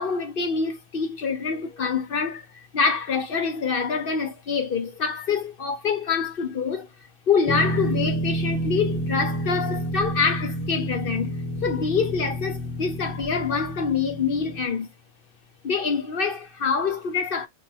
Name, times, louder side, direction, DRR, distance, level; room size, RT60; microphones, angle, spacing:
voice 1, 0.0-2.5 2.7-6.9 7.3-11.4 11.6-14.9 15.6-17.5, left 5 dB, 55° left, 0.7 m, -25 dB
sound 1, 7.4-14.7, equal, 20° left, 0.8 m, -29 dB
4.7 x 2.1 x 2.7 m
omnidirectional pair, 1.4 m